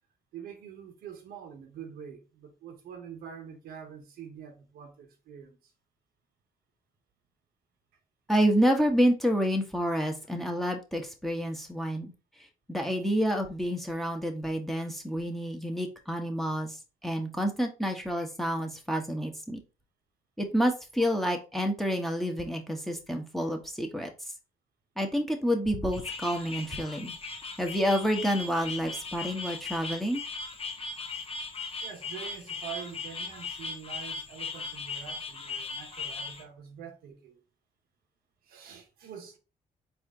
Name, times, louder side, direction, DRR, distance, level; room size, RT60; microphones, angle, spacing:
voice 1, 0.3-5.6 31.8-37.4 38.5-39.4, right 8 dB, 85° right, 0.9 m, -45 dB
voice 2, 8.3-12.1 12.7-16.7 17.0-19.6 20.4-24.1 25.0-27.1 27.6-30.2, equal, ahead, 1.0 m, -28 dB
sound 1, 25.9-36.4, left 4 dB, 40° left, 0.9 m, -38 dB
4.2 x 2.6 x 3.6 m
supercardioid pair, 65°, 15 cm